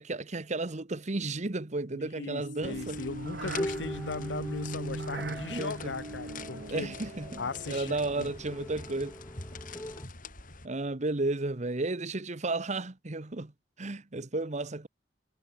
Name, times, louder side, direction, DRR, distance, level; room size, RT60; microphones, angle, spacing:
voice 1, 0.0-3.0 5.5-5.9 6.7-9.1 10.6-13.5 13.8-14.9, right 2 dB, 40° right, 1.1 m, -33 dB
voice 2, 1.9-6.9 7.4-8.3, left 4 dB, 85° left, 0.8 m, -38 dB
sound 1, 2.2-8.6, right 2 dB, 65° right, 1.3 m, -40 dB
sound 2, 2.6-10.7, left 4 dB, 50° left, 7.5 m, -46 dB
sound 3, 2.6-10.1, left 1 dB, 20° left, 4.4 m, -42 dB
head